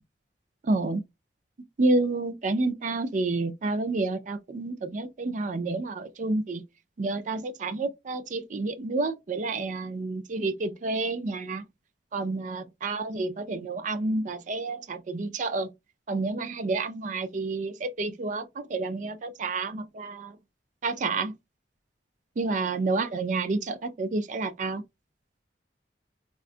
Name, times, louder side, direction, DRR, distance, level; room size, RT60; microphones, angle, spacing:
voice 1, 0.6-1.0 1.8-6.6 7.0-11.6 12.1-15.7 16.1-20.4 20.8-21.3 22.4-24.8, right 3 dB, 45° right, 0.4 m, -29 dB
3.7 x 2.2 x 2.4 m
head